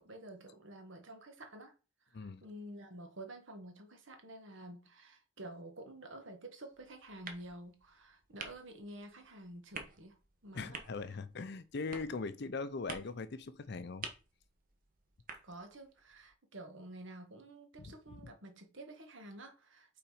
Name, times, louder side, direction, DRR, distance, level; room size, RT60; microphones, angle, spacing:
voice 1, 0.0-1.7 2.1-10.2 10.4-11.2 15.4-20.0, right 1 dB, 60° right, 1.5 m, -50 dB
sound 1, 6.7-16.3, right 4 dB, 40° right, 1.1 m, -51 dB
voice 2, 10.5-14.1 17.8-18.3, left 4 dB, 50° left, 0.5 m, -41 dB
5.9 x 4.0 x 4.8 m
head